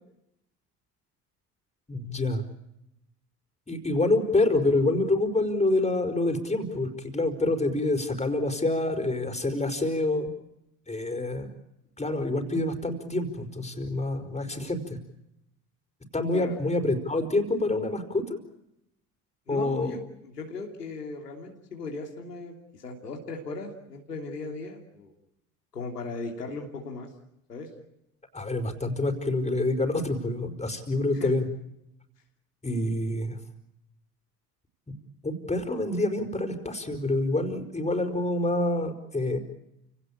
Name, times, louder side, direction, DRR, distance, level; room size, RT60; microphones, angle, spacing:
voice 1, 1.9-2.4 3.7-10.3 10.9-11.5 12.0-15.0 16.1-18.4 19.5-20.0 28.3-31.5 32.6-33.4 34.9-35.0 35.2-39.4, left 2 dB, 15° left, 7 dB, 4.9 m, -27 dB
voice 2, 19.5-25.1 25.7-27.1 27.5-27.7 31.1-31.3, left 3 dB, 90° left, 2 dB, 3.1 m, -37 dB
29.5 x 18.0 x 8.7 m, 0.85 s
hypercardioid pair, 60°, 46 cm